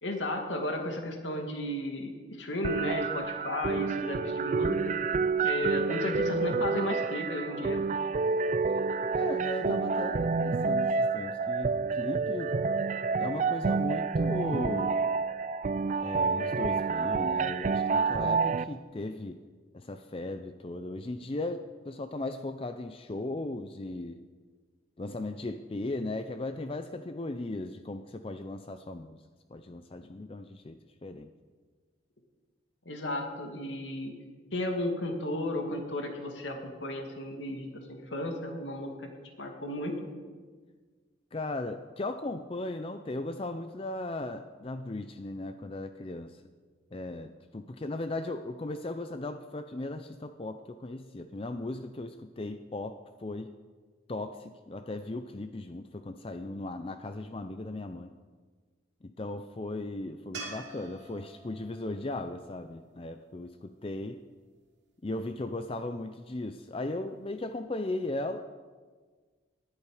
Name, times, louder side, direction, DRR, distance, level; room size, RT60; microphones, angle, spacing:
voice 1, 0.0-4.9 5.4-7.8 32.9-34.1 34.5-39.1 39.4-40.0, left 1 dB, 75° left, 3 dB, 2.3 m, -34 dB
sound 1, 2.6-18.6, right 4 dB, 40° right, 0.3 m, -29 dB
voice 2, 9.1-12.5 13.2-15.0 16.0-19.4 19.7-24.2 25.0-29.2 29.5-31.3 41.3-46.4 46.9-53.6 54.1-58.1 59.0-64.2 65.0-68.4, left 2 dB, 30° left, 9 dB, 0.5 m, -37 dB
sound 2, 60.3-63.6 66.8-66.9, right 3 dB, 70° right, 2.7 m, -46 dB
19.0 x 11.0 x 4.9 m, 1.5 s
head